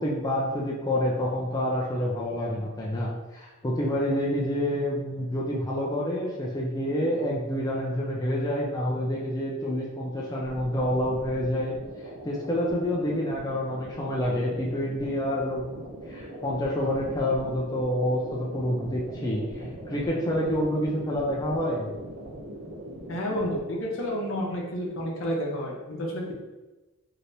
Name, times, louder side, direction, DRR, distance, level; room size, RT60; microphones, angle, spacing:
voice 1, 0.0-11.7 12.2-21.9, left 1 dB, 20° left, -4 dB, 0.4 m, -28 dB
sound 1, 10.4-23.6, right 1 dB, 80° right, 0.6 m, -41 dB
voice 2, 23.1-26.3, equal, 65° left, -2 dB, 0.7 m, -30 dB
3.2 x 2.7 x 2.6 m, 1.1 s
head